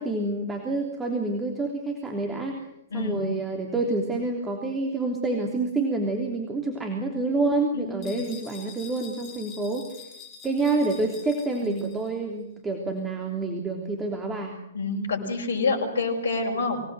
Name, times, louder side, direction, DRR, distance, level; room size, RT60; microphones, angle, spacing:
voice 1, 0.0-2.6 2.9-9.9 10.4-14.5, right 2 dB, 15° right, 2 dB, 3.2 m, -28 dB
voice 2, 2.9-3.2 7.7-8.3 11.6-11.9 14.7-16.8, left 3 dB, 65° left, 1 dB, 6.4 m, -28 dB
sound 1, 8.0-12.2, left 6 dB, 30° left, 6.8 m, -46 dB
25.5 x 19.5 x 8.0 m, 0.81 s
figure-of-eight pair, 115°, 0 cm